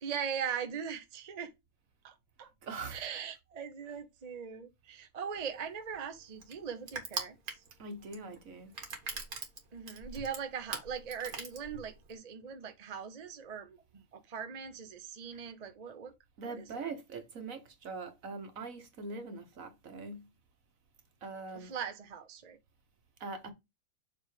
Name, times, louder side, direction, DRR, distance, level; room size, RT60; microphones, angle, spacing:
voice 1, 0.0-1.5 2.0-2.5 2.9-7.3 9.7-16.1 16.4-16.8 21.5-22.6, right 7 dB, 35° right, 0.8 m, -40 dB
voice 2, 2.6-3.1 7.8-8.8 16.4-20.3 21.2-21.7 23.2-23.5, right 3 dB, 65° right, 1.7 m, -42 dB
Crushing, 5.3-12.2, right 4 dB, 85° right, 2.0 m, -42 dB
7.2 x 3.4 x 5.0 m
omnidirectional pair, 1.5 m